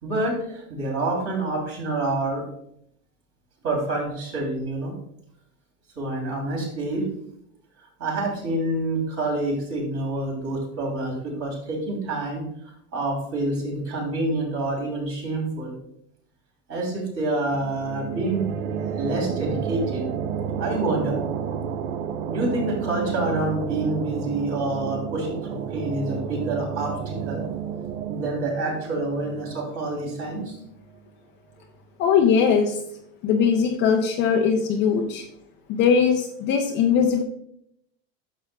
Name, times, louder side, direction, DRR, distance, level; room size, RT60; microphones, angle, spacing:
voice 1, 0.0-2.4 3.6-4.9 6.0-7.0 8.0-12.4 12.9-15.7 16.7-18.4 19.0-20.1 20.6-21.2 22.3-27.4 28.1-30.5, right 2 dB, 40° right, -1 dB, 3.0 m, -27 dB
sound 1, 17.5-30.9, right 7 dB, 70° right, 0.7 m, -31 dB
voice 2, 32.0-32.8 33.2-35.3 35.7-37.2, left 6 dB, 30° left, 4 dB, 0.4 m, -20 dB
10.5 x 6.9 x 2.2 m, 0.74 s
supercardioid pair, 160°, 38 cm